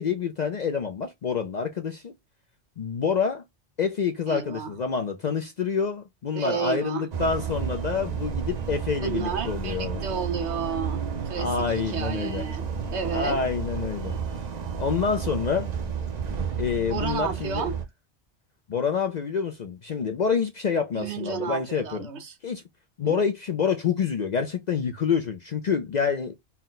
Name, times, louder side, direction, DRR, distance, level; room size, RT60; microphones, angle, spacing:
voice 1, 0.0-2.1 2.8-3.4 3.8-10.0 11.4-12.4 13.1-14.2 14.8-15.7 16.6-17.7 18.7-22.1 22.4-22.6 23.0-26.3, left 6 dB, 50° left, 0.5 m, -27 dB
voice 2, 4.3-4.7 6.3-7.1 9.0-12.7 12.9-13.4 16.9-17.8 20.9-22.3 23.0-23.2, right 7 dB, 70° right, 1.1 m, -32 dB
sound 1, 7.1-17.8, right 6 dB, 45° right, 0.6 m, -32 dB
4.2 x 2.1 x 3.9 m
omnidirectional pair, 1.2 m